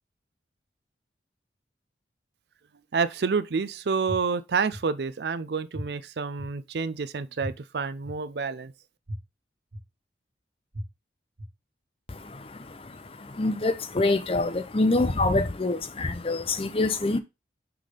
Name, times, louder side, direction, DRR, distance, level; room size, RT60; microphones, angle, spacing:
voice 1, 2.9-8.7, right 5 dB, 65° right, 0.5 m, -28 dB
sound 1, 4.1-4.2 4.7-4.8 5.7-5.8 6.4-6.5 7.4-7.5 8.0-8.1 9.1-9.2 9.7-9.8 10.7-10.8 11.4-11.5, equal, 90° right, 1.6 m, -34 dB
voice 2, 12.1-17.2, left 2 dB, 30° left, 0.6 m, -26 dB
6.0 x 3.6 x 4.9 m
head